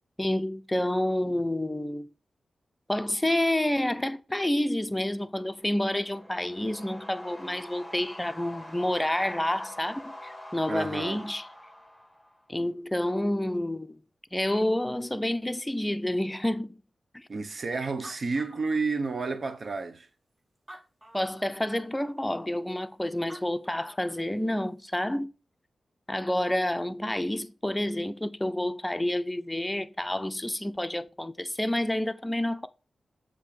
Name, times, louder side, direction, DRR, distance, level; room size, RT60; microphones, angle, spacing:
voice 1, 0.2-2.1 2.9-11.5 12.5-14.0 14.3-16.8 17.1-17.3 21.1-25.3 26.1-32.7, left 1 dB, 15° left, 0.6 m, -29 dB
sound 1, 5.4-12.5, left 1 dB, 5° right, 3.1 m, -45 dB
voice 2, 10.7-11.2 17.3-20.1, right 4 dB, 55° right, 0.9 m, -31 dB
Animal, 17.6-17.7 17.9-19.3 19.9-20.0 20.6-21.6 23.0-23.1 23.3-24.2, right 1 dB, 20° right, 1.1 m, -49 dB
7.4 x 2.8 x 5.3 m
cardioid pair, 50°, 0 cm